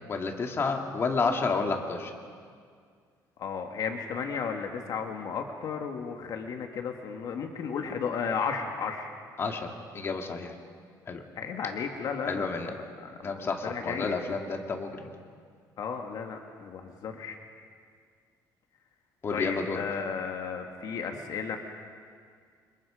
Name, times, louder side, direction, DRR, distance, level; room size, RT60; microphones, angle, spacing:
voice 1, 0.1-2.1 9.4-10.5 11.1-11.2 12.2-12.7 13.2-15.1 19.2-19.8, left 4 dB, 35° left, 3 dB, 2.2 m, -30 dB
voice 2, 3.4-9.1 11.4-14.1 15.8-17.4 19.3-21.6, left 6 dB, 60° left, 3 dB, 2.1 m, -34 dB
29.5 x 26.5 x 5.1 m, 2.1 s
cardioid pair, 135°, 8 cm